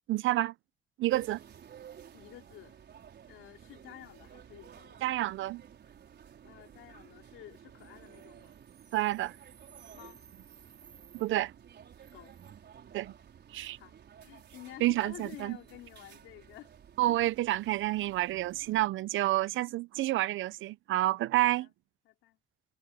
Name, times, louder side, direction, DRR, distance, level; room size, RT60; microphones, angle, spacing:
voice 1, 0.1-0.5 1.0-1.4 5.0-5.6 8.9-9.3 11.1-11.5 12.9-13.1 13.5-13.8 14.8-15.6 17.0-21.7, right 16 dB, 80° right, 0.7 m, -29 dB
sound 1, 1.1-18.9, right 8 dB, 60° right, 5.3 m, -54 dB
voice 2, 2.1-2.8 3.3-5.0 6.4-8.6 9.9-10.2 12.1-12.3 13.8-14.0 14.2-16.7 17.1-17.2 21.6-21.7 22.0-22.4, left 14 dB, 90° left, 3.1 m, -51 dB
cardioid pair, 90°, 20 cm